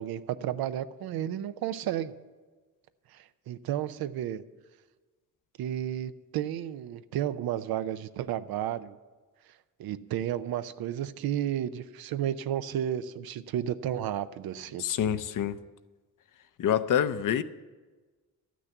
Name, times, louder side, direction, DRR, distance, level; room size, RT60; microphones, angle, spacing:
voice 1, 0.0-2.1 3.1-4.4 5.6-9.0 9.8-14.8, right 11 dB, 85° right, 13 dB, 0.6 m, -32 dB
voice 2, 14.8-15.6 16.6-17.4, left 9 dB, 60° left, 13 dB, 0.6 m, -26 dB
12.0 x 6.2 x 8.1 m, 1.3 s
cardioid pair, 75°, 36 cm